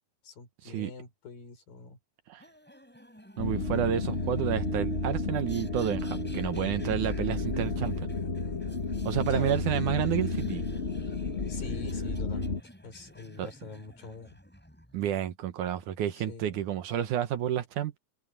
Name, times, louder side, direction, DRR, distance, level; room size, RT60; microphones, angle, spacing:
voice 1, 0.2-2.0 9.3-9.6 11.5-14.4 16.1-16.6, left 4 dB, 80° left, 8.0 m, -44 dB
sound 1, 2.4-15.1, equal, 5° left, 6.8 m, -52 dB
sound 2, 3.4-12.6, left 3 dB, 30° left, 1.3 m, -32 dB
voice 2, 3.4-8.1 9.0-10.7 13.4-13.5 14.9-18.0, right 11 dB, 70° right, 2.4 m, -30 dB
omnidirectional pair, 4.0 m